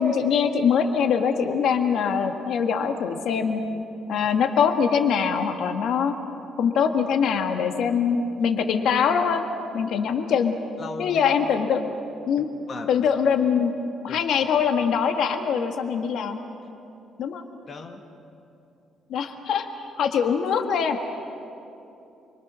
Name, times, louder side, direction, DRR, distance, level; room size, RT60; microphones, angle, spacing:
voice 1, 0.0-3.6 4.1-6.2 6.6-9.4 9.7-10.6 11.0-11.8 12.3-12.5 12.9-13.7 14.0-16.4 17.2-17.4 19.1-19.7 20.0-21.0, left 6 dB, 70° left, 5 dB, 1.7 m, -23 dB
voice 2, 10.8-11.2 12.4-12.9 14.1-14.2 17.7-18.0, left 4 dB, 40° left, 3 dB, 1.6 m, -38 dB
29.0 x 23.5 x 6.3 m, 2.8 s
cardioid pair, 140°, 0 cm